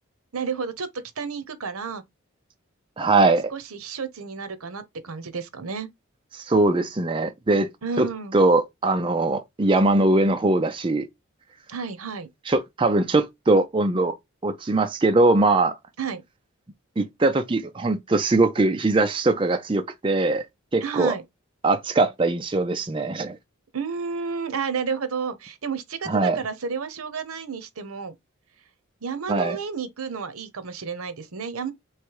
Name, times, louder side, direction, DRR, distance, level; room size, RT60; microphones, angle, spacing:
voice 1, 0.3-0.9 1.2-2.0 3.5-5.9 7.8-8.4 11.7-12.3 16.0-16.2 20.8-21.2 23.7-28.1 29.0-31.7, right 5 dB, 85° right, 0.8 m, -31 dB
voice 2, 3.0-3.5 6.3-7.7 8.0-11.1 12.5-14.1 14.4-15.8 17.0-20.5 20.7-21.1 21.6-23.4 26.1-26.4 29.3-29.6, right 2 dB, 25° right, 0.4 m, -21 dB
3.4 x 3.3 x 4.6 m
head